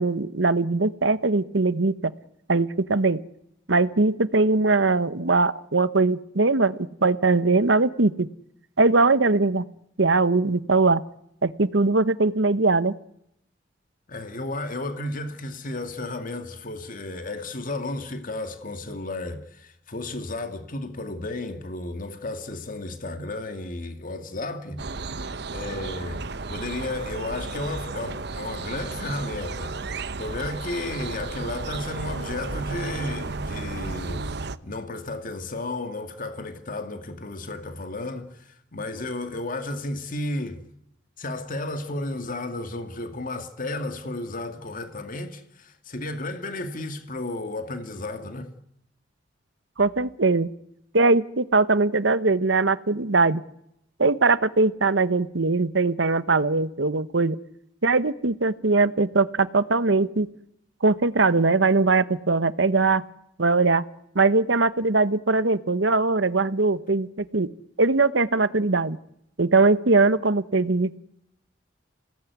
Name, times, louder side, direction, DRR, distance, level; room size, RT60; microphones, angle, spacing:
voice 1, 0.0-2.1 2.5-3.2 3.7-8.3 8.8-9.6 10.0-11.0 11.4-12.9 49.8-50.5 50.9-53.4 54.0-57.4 57.8-60.3 60.8-63.0 63.4-63.8 64.1-67.5 67.8-69.0 69.4-71.0, right 3 dB, 85° right, 1.1 m, -21 dB
voice 2, 14.1-24.8 25.1-40.6 41.2-48.5, left 2 dB, 50° left, 2.2 m, -33 dB
sound 1, 24.8-34.6, right 3 dB, 65° right, 1.0 m, -33 dB
27.0 x 18.5 x 9.4 m
head